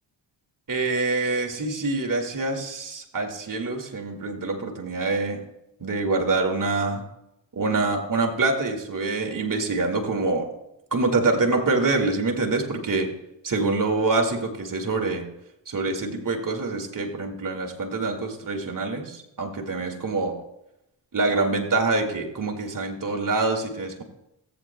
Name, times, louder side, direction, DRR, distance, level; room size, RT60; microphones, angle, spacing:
voice 1, 0.7-5.4 5.8-7.0 7.6-10.5 10.9-13.1 13.4-15.3 15.7-20.3 21.1-24.0, right 3 dB, 45° right, 2 dB, 2.0 m, -25 dB
18.0 x 8.4 x 2.2 m, 0.89 s
supercardioid pair, 40°, 46 cm